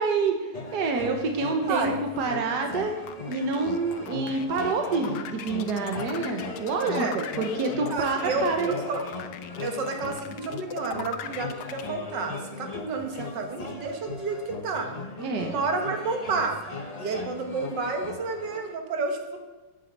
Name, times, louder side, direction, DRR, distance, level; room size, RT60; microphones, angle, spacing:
voice 1, 0.0-1.9 2.2-2.9 3.3-8.7 15.2-15.5, right 4 dB, 70° right, 4 dB, 1.6 m, -27 dB
sound 1, 0.5-18.8, left 3 dB, 30° left, 0.8 m, -38 dB
voice 2, 1.7-2.0 6.9-7.2 7.9-9.0 9.6-14.9 15.4-16.6 17.0-19.4, right 4 dB, 85° right, 4 dB, 2.0 m, -30 dB
sound 2, 2.7-11.8, left 9 dB, 90° left, 1.4 m, -39 dB
8.5 x 8.3 x 7.9 m, 1.2 s
omnidirectional pair, 1.9 m